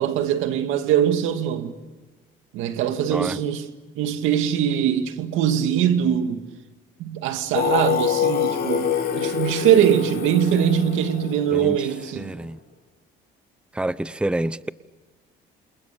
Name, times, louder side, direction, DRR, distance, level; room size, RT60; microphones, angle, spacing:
voice 1, 0.0-1.7 2.5-3.6 4.0-6.5 7.0-12.3, right 9 dB, 85° right, 2.3 m, -22 dB
Singing, 7.5-12.3, left 8 dB, 55° left, 5.9 m, -25 dB
voice 2, 11.5-11.9 12.1-12.6 13.7-14.7, right 1 dB, 5° right, 0.8 m, -27 dB
28.5 x 27.0 x 7.0 m
cardioid pair, 95°, 20 cm